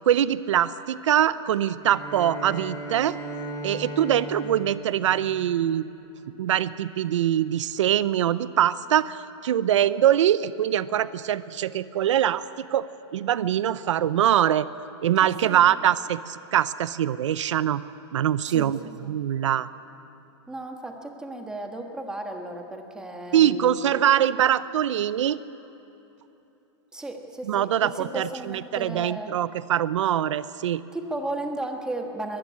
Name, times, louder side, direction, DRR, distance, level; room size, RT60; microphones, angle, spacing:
voice 1, 0.1-3.2 3.6-5.9 6.4-12.9 13.1-14.7 15.0-17.8 18.1-18.8 19.1-19.7 23.3-25.4 27.4-30.8, right 11 dB, 90° right, 16 dB, 0.6 m, -23 dB
Bowed string instrument, 1.8-6.2, right 1 dB, 20° left, 3.2 m, -37 dB
voice 2, 15.2-15.7 18.5-18.7 19.0-19.2 20.5-24.0 26.9-29.3 30.9-32.4, right 1 dB, 5° right, 3 dB, 1.5 m, -34 dB
22.5 x 14.0 x 9.6 m, 3.0 s
supercardioid pair, 155°, 15 cm